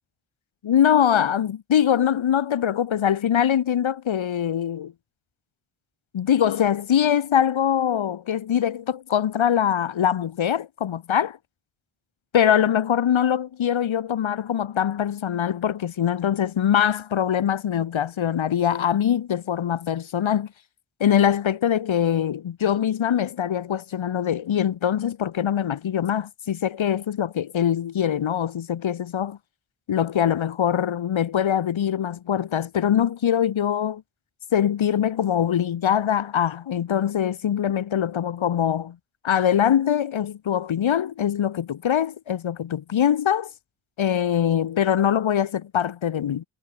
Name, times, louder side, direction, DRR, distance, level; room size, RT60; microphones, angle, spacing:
voice 1, 0.6-4.9 6.1-11.4 12.3-20.5 21.0-29.4 29.9-34.0 34.5-38.9 39.2-43.5 44.0-46.4, left 9 dB, 70° left, 1.6 m, -23 dB
wide cardioid pair, 120°, 49 cm